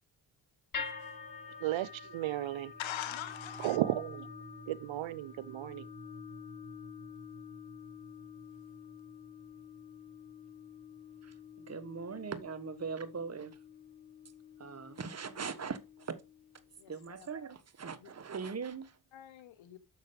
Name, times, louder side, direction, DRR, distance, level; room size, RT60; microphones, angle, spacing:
sound 1, 0.7-16.9, left 5 dB, 45° left, 5.0 m, -48 dB
voice 1, 1.6-2.7 3.6-4.3 4.7-5.8, right 14 dB, 75° right, 0.8 m, -34 dB
voice 2, 2.8-3.8 16.8-17.3 18.0-18.1 19.1-19.8, left 12 dB, 75° left, 1.2 m, -42 dB
voice 3, 11.2-13.6 14.6-16.2 16.9-19.0, right 5 dB, 30° right, 1.4 m, -41 dB
6.7 x 6.3 x 5.2 m
supercardioid pair, 45°, 47 cm